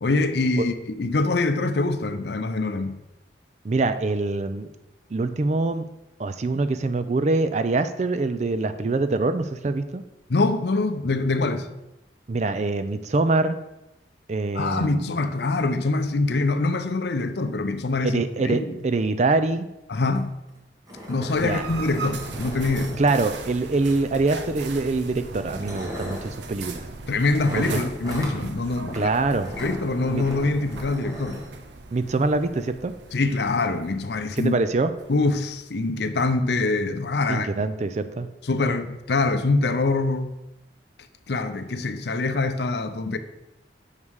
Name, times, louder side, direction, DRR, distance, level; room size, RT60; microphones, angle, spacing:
voice 1, 0.0-3.0 10.3-11.7 14.5-18.6 19.9-20.3 21.1-23.0 27.1-29.1 29.6-31.4 33.1-34.5 35.1-37.5 38.4-40.3 41.3-43.2, left 3 dB, 65° left, 0.6 m, -24 dB
voice 2, 3.6-4.7 5.1-5.9 6.2-10.0 12.3-13.6 14.3-15.1 18.0-19.7 21.4-21.6 23.0-26.9 27.6-27.8 28.9-29.5 30.1-30.2 31.9-32.9 34.4-34.9 37.3-38.3, right 3 dB, 40° right, 0.4 m, -24 dB
sound 1, 20.1-20.2 20.5-20.6 20.9-23.6 24.6-24.8 25.4-26.3 27.4-28.4 28.9-29.1 29.4-31.5, equal, 20° right, 1.4 m, -38 dB
sound 2, 21.3-35.9, right 3 dB, 70° right, 0.7 m, -39 dB
6.6 x 5.4 x 4.7 m
head